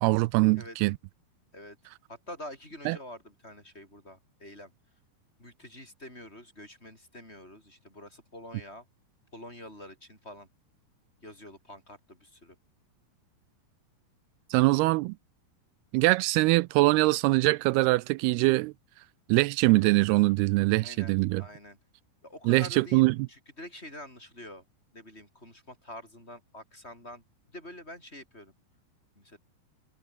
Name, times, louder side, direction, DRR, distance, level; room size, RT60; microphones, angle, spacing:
voice 1, 0.0-1.0 2.9-3.0 14.5-15.1 15.9-18.7 19.3-21.4 22.5-23.2, right 22 dB, 85° right, 2.5 m, -23 dB
voice 2, 2.1-4.7 5.4-8.9 9.3-10.5 11.2-12.6 20.8-21.8 22.2-24.6 24.9-27.2 27.5-28.5 29.2-29.4, left 1 dB, 15° left, 7.5 m, -46 dB
omnidirectional pair, 4.5 m